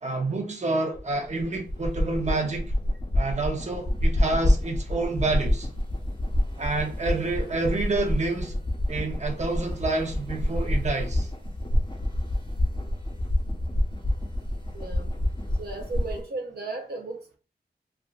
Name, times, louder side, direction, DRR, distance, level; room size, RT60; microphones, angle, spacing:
voice 1, 0.0-2.7 3.1-5.7 6.6-8.6 8.9-11.3, right 3 dB, 45° right, 0.8 m, -28 dB
sound 1, 0.9-16.2, left 1 dB, 30° left, 0.9 m, -27 dB
voice 2, 14.7-15.1 15.6-17.4, right 3 dB, 75° right, 0.7 m, -35 dB
3.4 x 2.4 x 2.4 m
cardioid pair, 55°, 17 cm